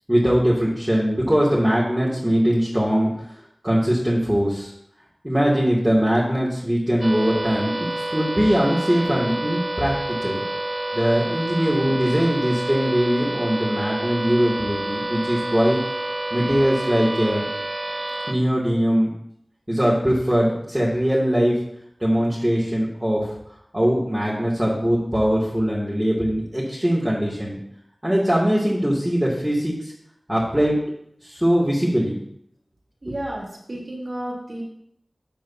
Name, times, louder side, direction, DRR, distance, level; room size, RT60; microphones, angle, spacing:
voice 1, 0.1-3.1 3.6-4.7 5.2-10.5 10.9-15.8 16.3-17.4 18.3-19.1 19.7-21.6 22.0-23.3 23.7-27.6 28.0-29.9 30.3-30.8 31.2-32.2 33.1-33.2, equal, 15° right, -7 dB, 2.7 m, -21 dB
sound 1, 7.0-18.3, right 1 dB, 45° right, 0.7 m, -28 dB
voice 2, 33.0-34.6, right 1 dB, 65° right, -3 dB, 3.6 m, -32 dB
13.5 x 7.6 x 2.9 m, 0.71 s
wide cardioid pair, 50°, 0 cm